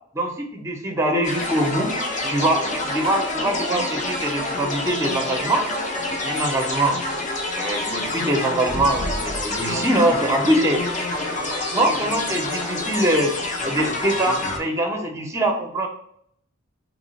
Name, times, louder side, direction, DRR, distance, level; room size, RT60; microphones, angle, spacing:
voice 1, 0.1-1.9 2.3-5.7 6.1-7.0 7.5-10.8 11.4-13.3 13.6-15.9, right 1 dB, 15° right, 2 dB, 0.6 m, -23 dB
sound 1, 1.2-14.6, left 2 dB, 35° left, 0.5 m, -27 dB
3.0 x 2.4 x 4.0 m, 0.68 s
head